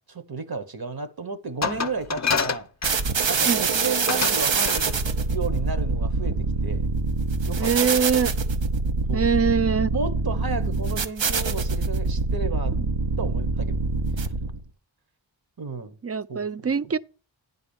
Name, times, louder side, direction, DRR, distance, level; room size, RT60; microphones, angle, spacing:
voice 1, 0.1-2.7 3.2-5.0 5.3-6.9 7.4-8.0 9.1-9.3 9.9-12.8 13.2-13.9 15.6-16.0 16.3-16.5, right 4 dB, 55° right, 1.1 m, -33 dB
Glass, 1.6-3.4 4.1-4.4 4.7-4.9, left 5 dB, 40° left, 0.7 m, -27 dB
sound 1, 2.8-14.6, right 4 dB, 80° right, 0.9 m, -25 dB
voice 2, 7.6-8.3 9.1-9.9 12.7-12.9 16.0-17.0, right 6 dB, 35° right, 0.4 m, -23 dB
9.8 x 4.1 x 7.0 m
wide cardioid pair, 55°, 44 cm